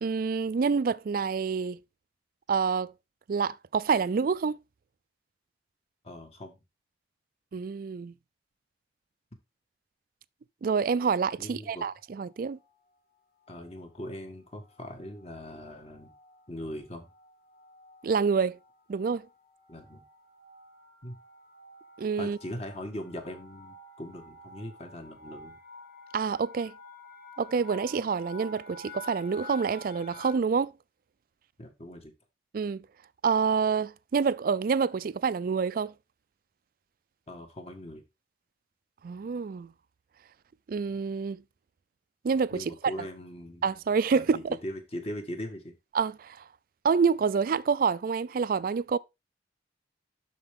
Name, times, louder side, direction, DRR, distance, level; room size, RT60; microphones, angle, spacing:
voice 1, 0.0-1.8 2.5-2.9 3.3-4.6 7.5-8.1 10.6-12.6 18.0-18.6 18.9-19.3 22.0-22.4 26.1-26.7 27.4-30.7 32.5-32.9 33.2-35.9 39.0-39.7 40.7-41.4 42.2-42.6 43.6-44.6 45.9-46.4 46.8-49.0, right 5 dB, 50° right, 0.4 m, -27 dB
voice 2, 6.0-6.6 11.4-11.8 13.5-16.1 16.5-17.1 19.7-20.0 21.0-21.2 22.2-25.6 31.6-32.1 37.3-38.0 42.5-43.7 44.1-45.7, left 1 dB, 35° left, 1.7 m, -40 dB
sound 1, 12.2-12.7 13.4-13.8 14.1-14.3 14.6-30.3, left 1 dB, 55° left, 1.7 m, -50 dB
11.5 x 4.5 x 3.6 m
head